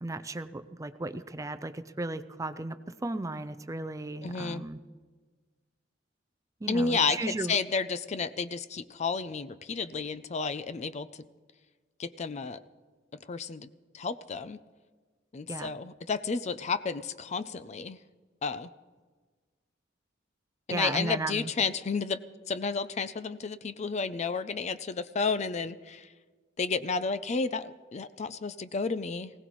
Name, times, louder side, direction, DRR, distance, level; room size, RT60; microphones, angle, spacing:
voice 1, 0.0-4.8 6.6-7.5 15.5-15.7 20.7-21.5, right 2 dB, 15° right, 11 dB, 0.5 m, -35 dB
voice 2, 4.2-4.6 6.7-11.3 12.0-12.6 13.3-13.7 13.9-14.6 15.3-18.0 18.4-18.7 20.7-22.2 22.5-26.1 26.6-29.3, left 4 dB, 35° left, 14 dB, 0.4 m, -31 dB
20.0 x 17.5 x 3.1 m, 1.4 s
head